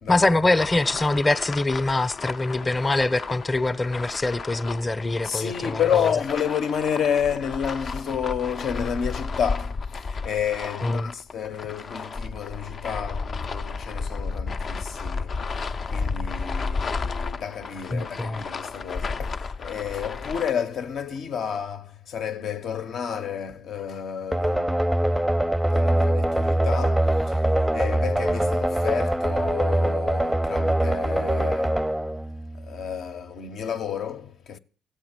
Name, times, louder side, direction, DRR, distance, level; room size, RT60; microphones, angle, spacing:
voice 1, 0.1-6.1 10.8-11.1 17.9-18.4, left 2 dB, 20° left, 0.8 m, -24 dB
sound 1, 0.5-20.5, left 4 dB, 50° left, 0.5 m, -33 dB
voice 2, 5.2-31.9 32.5-34.6, left 8 dB, 70° left, 0.9 m, -30 dB
sound 2, 24.3-33.0, right 1 dB, 5° right, 0.6 m, -23 dB
14.5 x 8.2 x 8.1 m
supercardioid pair, 60°, 0 cm